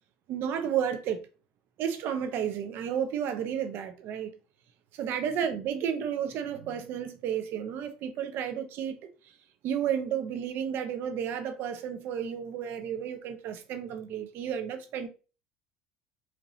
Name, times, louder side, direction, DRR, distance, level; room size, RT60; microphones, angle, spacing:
voice 1, 0.3-1.2 1.8-4.3 4.9-9.0 9.6-15.1, right 8 dB, 55° right, 0.8 m, -32 dB
4.6 x 2.6 x 2.7 m
hypercardioid pair, 80°, 4 cm